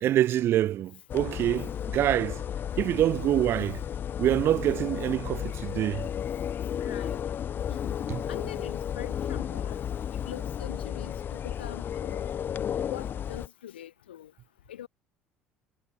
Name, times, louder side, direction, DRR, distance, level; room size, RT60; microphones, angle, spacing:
voice 1, 0.0-2.4 2.8-3.8 4.2-6.1 8.1-8.2, right 12 dB, 45° right, 0.5 m, -26 dB
sound 1, 1.1-13.5, left 9 dB, 35° left, 0.6 m, -33 dB
voice 2, 6.8-7.2 7.7-7.9 8.3-9.8 10.3-12.3 12.8-14.3 14.7-14.9, left 11 dB, 75° left, 0.6 m, -43 dB
figure-of-eight pair, 60°, 6 cm